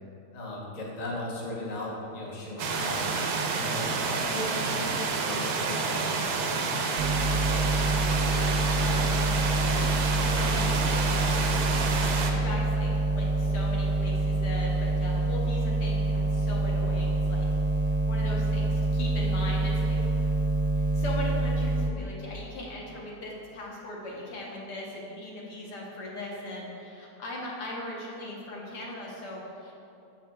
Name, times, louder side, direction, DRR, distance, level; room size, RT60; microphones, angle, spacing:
voice 1, 0.3-6.7, left 1 dB, 30° left, -4 dB, 0.8 m, -37 dB
sound 1, 2.6-12.3, right 4 dB, 70° right, 1.0 m, -29 dB
sound 2, 7.0-21.9, right 2 dB, 85° right, 0.6 m, -26 dB
voice 2, 7.2-11.7 12.3-17.5 17.8-20.3 20.7-29.7, left 1 dB, 75° left, -3 dB, 1.7 m, -39 dB
8.8 x 6.4 x 2.3 m, 2.7 s
omnidirectional pair, 1.8 m